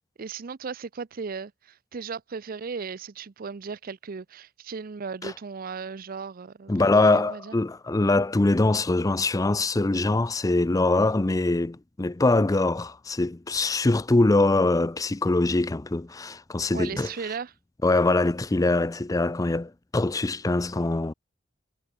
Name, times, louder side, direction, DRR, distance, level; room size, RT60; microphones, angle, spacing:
voice 1, 0.2-6.7 7.0-7.5 16.7-17.5, right 5 dB, 45° right, 0.5 m, -36 dB
voice 2, 6.7-17.1 17.8-21.1, left 2 dB, 15° left, 0.5 m, -23 dB
head